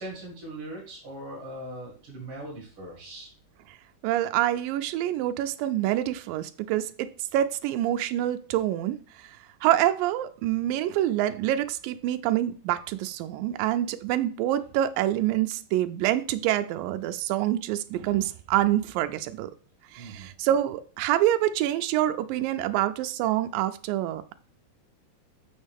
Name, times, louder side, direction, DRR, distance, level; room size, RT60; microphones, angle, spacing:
voice 1, 0.0-3.3 20.0-20.3, right 1 dB, 45° right, 2.3 m, -40 dB
voice 2, 4.0-19.5 19.9-24.3, right 13 dB, 85° right, 2.0 m, -26 dB
6.8 x 6.4 x 3.5 m
omnidirectional pair, 4.5 m